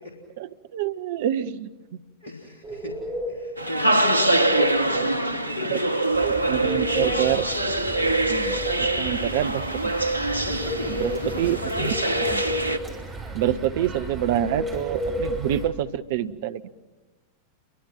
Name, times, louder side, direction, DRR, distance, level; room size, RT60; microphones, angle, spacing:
voice 1, 0.4-1.7 5.7-5.8 6.2-7.5 8.3-9.9 10.9-11.1 11.4-11.9 12.2-12.4 13.3-16.6, right 11 dB, 50° right, 12 dB, 0.9 m, -27 dB
voice 2, 2.2-2.9 3.3-7.0 10.4-11.9, left 1 dB, 60° left, -1 dB, 3.9 m, -35 dB
sound 1, 2.6-3.5 4.0-4.8 6.4-7.4 7.8-8.9 10.3-11.3 11.8-12.8 14.4-15.4, left 1 dB, 35° right, 5.4 m, -32 dB
sound 2, 3.6-12.8, right 2 dB, 90° left, 1.1 m, -24 dB
sound 3, 6.1-15.7, right 4 dB, 20° right, 6.1 m, -38 dB
29.5 x 24.0 x 5.9 m, 1.2 s
figure-of-eight pair, 90°, 0 cm